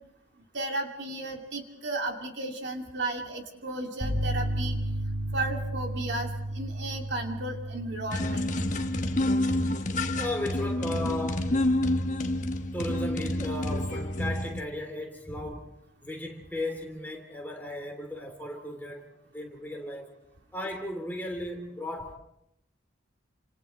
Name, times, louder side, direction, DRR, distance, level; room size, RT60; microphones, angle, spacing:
voice 1, 0.5-4.8 5.3-8.5, right 2 dB, 65° right, 2.6 m, -34 dB
sound 1, 4.0-11.7, right 1 dB, 25° right, 6.3 m, -34 dB
sound 2, 8.1-14.6, left 1 dB, 40° left, 1.1 m, -28 dB
voice 2, 10.1-11.5 12.7-15.7 16.0-19.1 19.3-20.1 20.5-22.2, left 1 dB, 10° left, 3.2 m, -35 dB
29.5 x 27.5 x 3.3 m
head